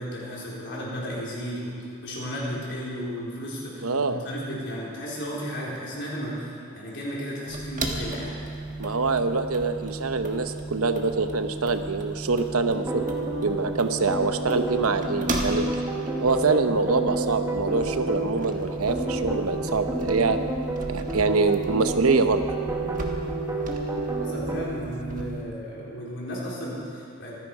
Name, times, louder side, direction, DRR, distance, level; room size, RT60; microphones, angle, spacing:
voice 1, 0.0-1.7 2.0-8.3 24.2-27.3, equal, 55° left, -5 dB, 4.3 m, -34 dB
voice 2, 3.8-4.2 8.8-13.0 13.4-15.7 16.2-20.4 20.9-22.4, right 4 dB, 85° right, 8 dB, 0.9 m, -25 dB
sound 1, 7.5-25.4, right 2 dB, 40° right, 1.5 m, -35 dB
sound 2, 12.7-24.7, right 2 dB, 15° right, 1.3 m, -30 dB
24.5 x 10.0 x 4.9 m, 2.4 s
head